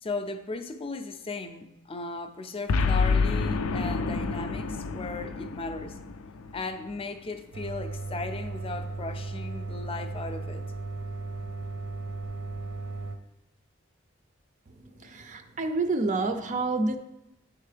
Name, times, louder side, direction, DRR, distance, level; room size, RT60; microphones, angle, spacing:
voice 1, 0.0-6.0 6.5-10.7, left 3 dB, 25° left, 8 dB, 0.4 m, -36 dB
Boom, 2.7-7.1, left 4 dB, 90° left, 0.4 m, -28 dB
sound 1, 7.5-13.2, right 3 dB, 80° right, 0.7 m, -36 dB
voice 2, 14.8-17.0, right 3 dB, 40° right, 7 dB, 0.4 m, -28 dB
9.7 x 3.7 x 3.3 m, 0.92 s
head